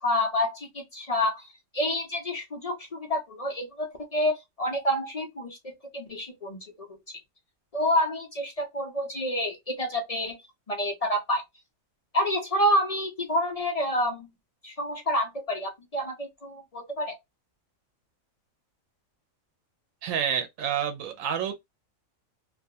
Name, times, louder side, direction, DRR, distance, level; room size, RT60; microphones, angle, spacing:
voice 1, 0.0-1.4 1.7-5.6 5.9-6.9 7.7-10.4 10.7-11.4 12.1-14.3 14.6-17.1, equal, 45° left, 0.5 m, -28 dB
voice 2, 20.0-21.5, right 8 dB, 85° right, 1.0 m, -28 dB
2.5 x 2.3 x 2.6 m
omnidirectional pair, 1.4 m